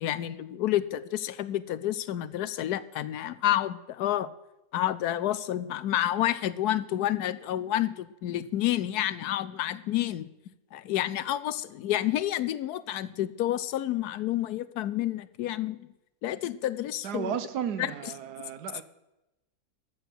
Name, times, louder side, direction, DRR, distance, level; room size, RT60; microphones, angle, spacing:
voice 1, 0.0-4.3 4.7-10.3 10.7-15.8 16.2-17.4 17.8-18.1, left 13 dB, 80° left, 1.2 m, -29 dB
voice 2, 17.0-18.8, right 9 dB, 85° right, 1.4 m, -34 dB
13.5 x 6.8 x 8.0 m
omnidirectional pair, 1.7 m